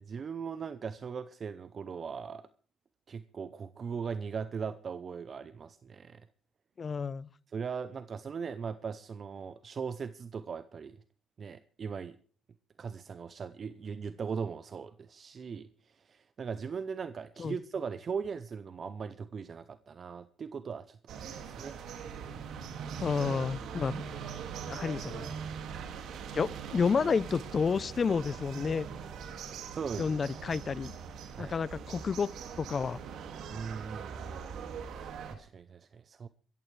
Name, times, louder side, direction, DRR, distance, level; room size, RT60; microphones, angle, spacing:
voice 1, 0.0-2.5 3.1-6.2 7.5-11.0 11.4-12.2 12.8-15.7 16.1-21.8 29.7-30.2 31.4-31.6 33.5-36.3, right 6 dB, 45° right, 0.6 m, -39 dB
voice 2, 6.8-7.3 17.4-17.6 23.0-24.0 24.7-25.3 26.3-28.9 30.0-30.9 31.4-32.3 32.6-33.0, left 5 dB, 40° left, 0.6 m, -30 dB
sound 1, 21.1-35.4, right 7 dB, 80° right, 2.1 m, -41 dB
25.0 x 14.5 x 3.3 m
cardioid pair, 90°, 0 cm